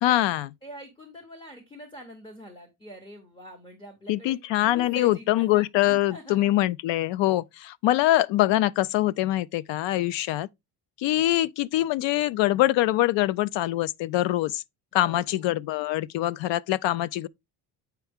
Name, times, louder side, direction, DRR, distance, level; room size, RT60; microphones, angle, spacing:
voice 1, 0.0-0.5 4.1-10.5 11.0-14.6 14.9-17.3, left 15 dB, 80° left, 0.5 m, -24 dB
voice 2, 0.6-6.5 14.9-15.5, equal, 10° left, 0.9 m, -45 dB
8.2 x 4.5 x 3.5 m
cardioid pair, 180°, 43 cm